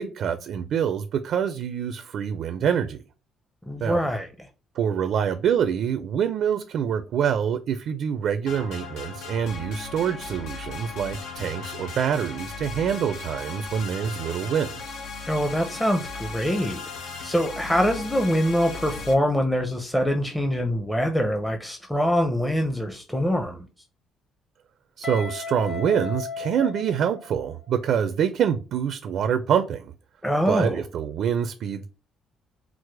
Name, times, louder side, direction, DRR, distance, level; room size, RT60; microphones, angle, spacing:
voice 1, 0.0-3.0 3.8-4.0 4.7-14.8 25.0-29.9 30.5-31.9, right 8 dB, 65° right, 0.4 m, -26 dB
voice 2, 3.7-4.3 15.3-16.8 17.2-23.7 30.2-30.8, equal, 5° left, 0.6 m, -24 dB
sound 1, 8.5-19.1, left 4 dB, 85° left, 0.9 m, -37 dB
Guitar, 25.0-27.9, left 4 dB, 40° left, 1.8 m, -35 dB
4.6 x 2.1 x 4.6 m
cardioid pair, 110°, 0 cm